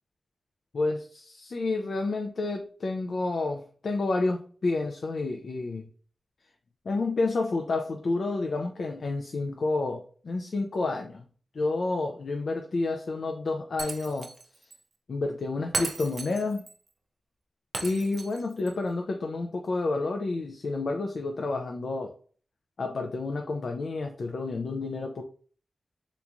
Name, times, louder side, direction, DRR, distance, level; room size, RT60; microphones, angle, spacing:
voice 1, 0.7-5.9 6.9-11.2 11.5-14.3 15.1-16.6 17.8-22.1 22.8-25.2, left 3 dB, 70° left, 3 dB, 0.4 m, -30 dB
Shatter, 13.8-14.5 14.7-14.8 15.7-16.7 17.7-18.7, right 3 dB, 50° right, 0.3 m, -35 dB
3.4 x 2.9 x 2.5 m, 0.43 s
wide cardioid pair, 100°, 0 cm